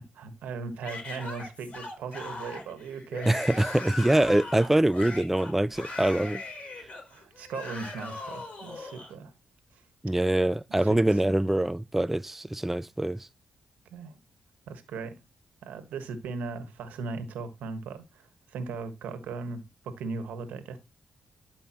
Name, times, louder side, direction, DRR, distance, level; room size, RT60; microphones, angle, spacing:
voice 1, 0.2-3.5 6.8-9.3 9.7-9.8 10.7-11.2 13.9-14.2 14.7-15.2 15.6-20.8, right 4 dB, 85° right, 1.5 m, -38 dB
Yell / Screaming, 0.8-9.1, left 2 dB, 55° left, 4.1 m, -39 dB
voice 2, 3.3-6.4 10.0-13.3, right 1 dB, 10° right, 0.3 m, -24 dB
12.0 x 5.3 x 3.0 m
supercardioid pair, 50°, 3 cm